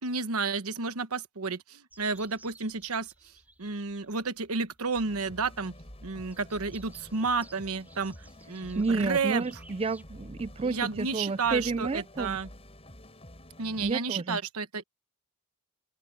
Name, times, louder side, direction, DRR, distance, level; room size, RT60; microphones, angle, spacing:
voice 1, 0.0-5.7 6.0-9.4 10.6-12.5 13.6-14.8, right 4 dB, 80° right, 1.1 m, -31 dB
sound 1, 1.9-10.0, right 2 dB, 10° right, 6.2 m, -58 dB
sound 2, 4.9-13.9, left 1 dB, 30° left, 7.5 m, -49 dB
voice 2, 8.8-12.4 13.8-14.4, right 4 dB, 25° right, 0.4 m, -31 dB
open air
head